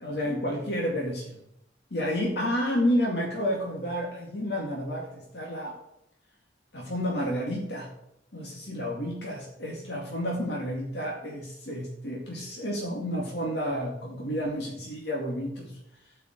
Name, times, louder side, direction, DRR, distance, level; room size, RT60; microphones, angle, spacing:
voice 1, 0.0-1.4 1.9-5.8 6.7-7.9 8.3-15.8, equal, 65° left, -2 dB, 2.2 m, -30 dB
12.5 x 5.7 x 8.0 m, 0.80 s
head